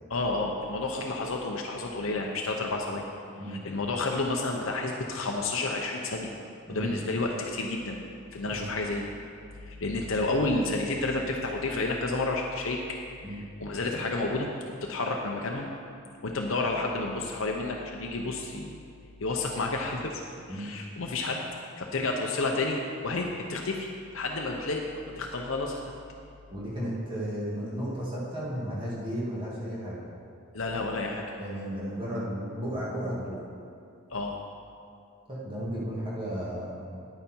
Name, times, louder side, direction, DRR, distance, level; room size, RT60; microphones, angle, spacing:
voice 1, 0.1-3.0 3.5-6.3 6.7-8.0 8.3-9.1 9.6-12.8 13.3-14.5 14.8-15.7 16.2-18.8 19.2-20.2 20.5-21.4 21.8-25.8 30.5-31.2 34.1-34.4, left 2 dB, 60° left, 0 dB, 0.8 m, -30 dB
voice 2, 26.5-30.0 31.4-33.4 35.3-37.0, equal, 25° right, -8 dB, 2.3 m, -34 dB
10.0 x 9.1 x 4.5 m, 2.4 s
head